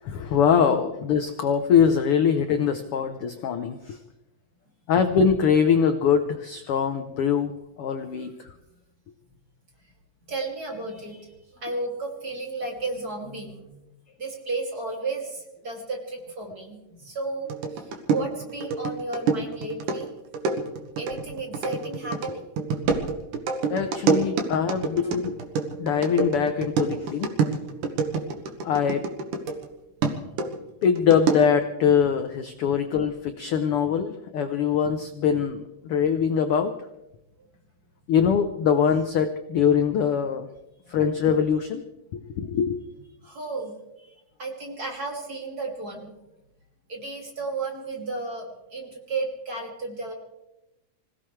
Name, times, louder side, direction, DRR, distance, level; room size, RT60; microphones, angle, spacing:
voice 1, 0.0-4.0 4.9-8.5 11.9-12.0 23.7-25.4 25.8-27.4 28.6-29.1 30.8-36.7 38.1-40.5 40.9-41.8 42.1-42.8, left 7 dB, 75° left, 8 dB, 1.3 m, -23 dB
voice 2, 10.3-13.8 14.2-20.1 20.8-22.4 27.2-27.3 28.3-28.5 30.4-30.8 37.4-37.5 40.8-40.9 43.2-43.7 44.4-46.1 46.9-50.1, right 3 dB, 30° right, 0 dB, 2.9 m, -33 dB
sound 1, 17.5-29.7 30.0-31.6, right 5 dB, 80° right, 3.0 m, -27 dB
26.0 x 17.0 x 3.3 m, 0.91 s
omnidirectional pair, 3.6 m